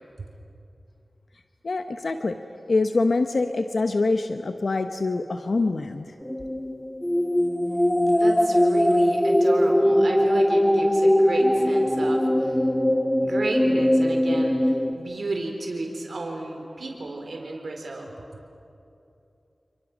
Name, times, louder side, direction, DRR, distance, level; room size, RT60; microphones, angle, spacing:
voice 1, 1.6-2.4 2.7-6.1, left 3 dB, 75° left, 7 dB, 1.0 m, -24 dB
sound 1, 6.2-14.9, equal, 15° left, 1.4 m, -21 dB
voice 2, 8.1-12.6 13.2-18.1, right 2 dB, 85° right, 2 dB, 4.1 m, -32 dB
28.5 x 28.5 x 6.2 m, 2.8 s
cardioid pair, 40°, 0 cm